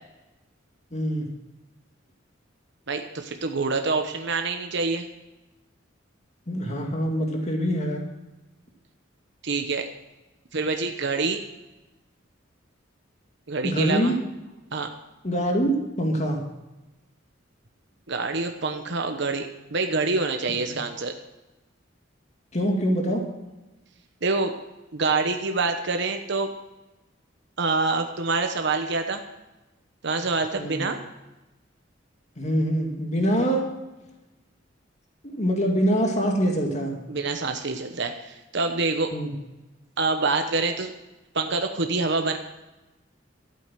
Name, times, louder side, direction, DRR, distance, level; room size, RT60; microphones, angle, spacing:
voice 1, 0.9-1.3 6.5-8.0 13.6-14.1 15.2-16.4 22.5-23.2 30.6-30.8 32.4-33.6 35.2-37.0 39.1-39.3, equal, 35° left, 1 dB, 2.4 m, -24 dB
voice 2, 2.9-5.1 9.4-9.9 10.5-11.4 13.5-14.1 14.7-14.9 18.1-21.2 24.2-24.5 24.9-26.5 27.6-29.2 30.0-31.0 37.1-39.1 40.0-40.9 41.3-42.4, right 3 dB, 65° right, 6 dB, 1.1 m, -26 dB
13.0 x 8.7 x 7.6 m, 1.0 s
head